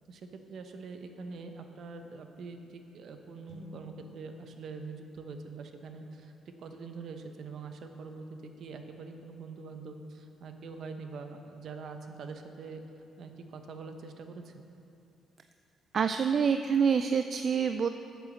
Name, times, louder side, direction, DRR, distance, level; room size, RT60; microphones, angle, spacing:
voice 1, 0.1-6.3 6.6-12.8 13.2-14.6, right 4 dB, 65° right, 6 dB, 0.8 m, -44 dB
sound 1, 3.5-7.0, right 1 dB, 10° left, 1.9 m, -54 dB
voice 2, 15.9-17.9, right 6 dB, 50° right, 8 dB, 0.3 m, -26 dB
8.9 x 6.9 x 6.3 m, 2.7 s
cardioid pair, 90°, 0 cm